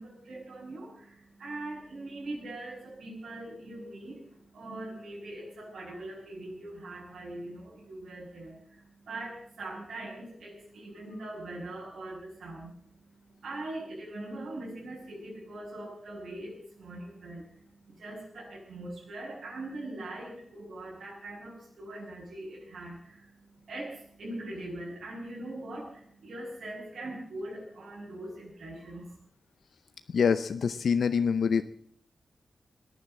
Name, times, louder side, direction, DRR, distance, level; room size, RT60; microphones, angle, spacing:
voice 1, 0.0-29.2, right 1 dB, 85° right, -7 dB, 6.7 m, -42 dB
voice 2, 30.1-31.6, left 6 dB, 80° left, 11 dB, 0.6 m, -25 dB
18.0 x 10.5 x 7.7 m, 0.63 s
wide cardioid pair, 175°, 0 cm